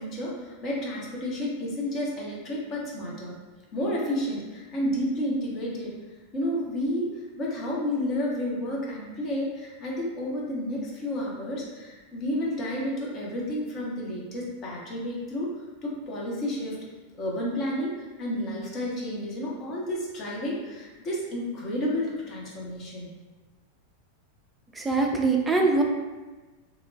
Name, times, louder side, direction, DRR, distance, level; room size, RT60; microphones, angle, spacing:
voice 1, 0.0-3.3 3.7-5.9 6.3-15.5 15.8-16.8 17.2-23.1, left 1 dB, 30° left, -4 dB, 0.8 m, -31 dB
voice 2, 24.8-25.8, right 3 dB, 10° right, 0 dB, 0.4 m, -22 dB
2.9 x 2.1 x 2.6 m, 1.2 s
figure-of-eight pair, 90°, 0 cm